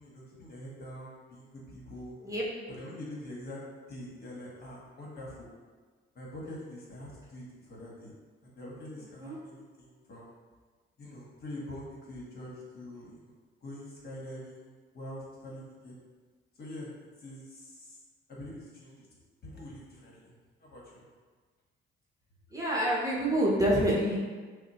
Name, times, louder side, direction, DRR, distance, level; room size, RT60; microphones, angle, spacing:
voice 1, 0.0-2.1 2.7-5.5 6.1-8.1 8.4-10.3 11.0-13.3 13.6-15.9 16.6-16.9 17.2-18.0 18.3-19.1 19.4-21.0, left 1 dB, 50° left, -4 dB, 1.3 m, -44 dB
voice 2, 9.0-9.4 22.5-24.2, right 1 dB, 15° right, -5 dB, 0.9 m, -27 dB
5.9 x 2.1 x 3.0 m, 1.5 s
cardioid pair, 90°, 20 cm